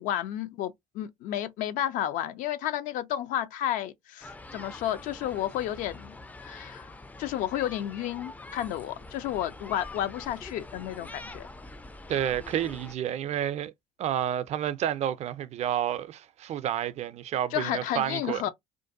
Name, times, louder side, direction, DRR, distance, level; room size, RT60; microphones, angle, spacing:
voice 1, 0.0-6.1 6.4-6.9 7.2-11.5 17.5-18.5, left 12 dB, 75° left, 0.5 m, -32 dB
sound 1, 4.2-12.9, left 2 dB, 10° left, 0.3 m, -45 dB
voice 2, 12.1-13.7 14.0-18.4, right 10 dB, 55° right, 0.4 m, -30 dB
2.5 x 2.2 x 2.6 m
supercardioid pair, 70°, 14 cm